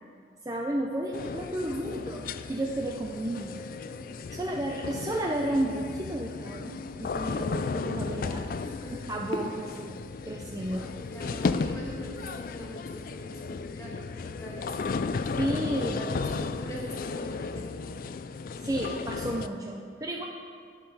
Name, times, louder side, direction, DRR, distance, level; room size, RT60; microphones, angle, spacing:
voice 1, 0.4-2.2 2.5-3.6 4.3-8.4 9.1-10.0 10.2-10.9 15.4-16.1 18.6-20.2, right 1 dB, 20° right, -1 dB, 0.6 m, -32 dB
sound 1, 1.1-19.5, left 4 dB, 50° left, 0.3 m, -35 dB
voice 2, 1.8-2.2 4.4-4.5 8.5-9.0 11.0-15.5 15.9-18.0, equal, 15° left, -3 dB, 1.8 m, -43 dB
sound 2, 3.2-4.7, left 1 dB, 35° right, 2.9 m, -50 dB
sound 3, 6.3-12.5, left 2 dB, 75° left, 0.9 m, -44 dB
11.0 x 6.9 x 5.5 m, 2.3 s
head